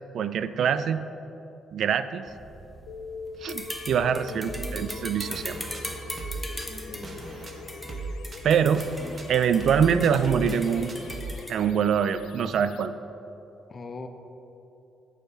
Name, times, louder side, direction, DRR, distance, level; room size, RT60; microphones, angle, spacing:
voice 1, 0.1-1.0 1.7-2.3 3.4-5.6 8.4-8.9 9.3-10.9 11.5-12.9, right 7 dB, 65° right, 12 dB, 0.3 m, -24 dB
sound 1, 2.3-11.5, equal, ahead, 1.1 m, -40 dB
sound 2, 2.9-12.9, left 6 dB, 85° left, 0.3 m, -43 dB
voice 2, 4.1-4.6 6.8-7.3 13.7-14.1, left 3 dB, 35° left, 6 dB, 0.7 m, -42 dB
sound 3, 4.5-11.3, right 3 dB, 40° right, 0.9 m, -39 dB
6.7 x 6.4 x 5.4 m, 2.9 s
cardioid pair, 90°, 0 cm